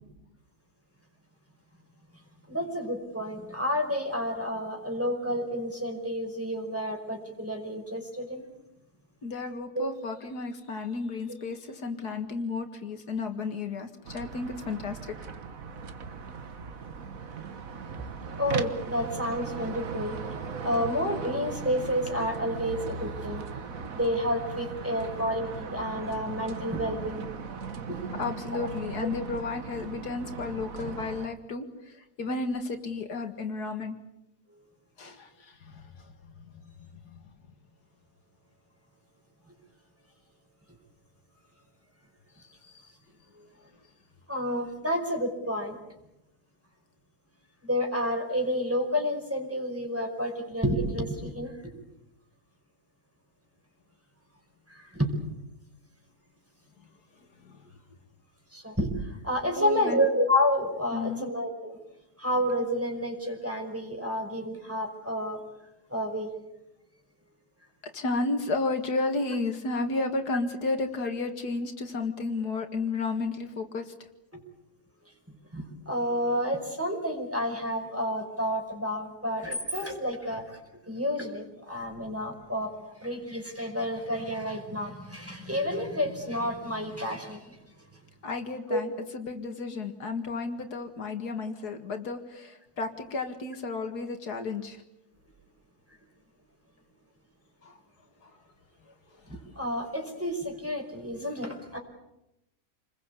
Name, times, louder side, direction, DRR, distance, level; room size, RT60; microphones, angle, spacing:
voice 1, 2.1-8.5 9.8-9.9 18.4-20.2 20.6-23.4 23.9-27.3 27.9-28.0 28.5-28.7 39.5-39.6 43.3-43.5 44.3-45.8 47.6-51.8 54.7-55.1 58.5-61.8 62.2-65.4 65.9-66.3 74.3-74.4 75.3-80.6 80.9-88.0 88.7-88.8 99.2-101.8, equal, 10° right, 2 dB, 5.3 m, -30 dB
voice 2, 9.2-15.2 28.2-34.0 35.0-36.6 37.1-37.2 42.6-42.9 57.4-57.7 59.6-60.0 60.9-61.3 67.8-73.9 88.2-94.8 97.6-97.8 98.2-98.3 99.3-99.4, left 3 dB, 80° left, 6 dB, 2.5 m, -33 dB
sound 1, 14.0-31.3, right 5 dB, 60° right, 1.8 m, -38 dB
28.5 x 21.5 x 8.4 m, 0.90 s
omnidirectional pair, 1.7 m